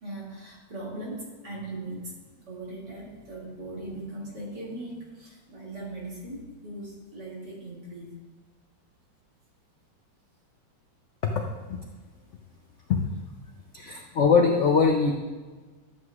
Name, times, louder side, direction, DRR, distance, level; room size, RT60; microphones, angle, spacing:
voice 1, 0.0-2.2 2.5-8.1 13.8-14.0, right 2 dB, 60° right, -5 dB, 3.0 m, -39 dB
voice 2, 13.7-15.1, left 5 dB, 75° left, 2 dB, 0.7 m, -22 dB
12.0 x 7.9 x 2.4 m, 1.3 s
omnidirectional pair, 2.1 m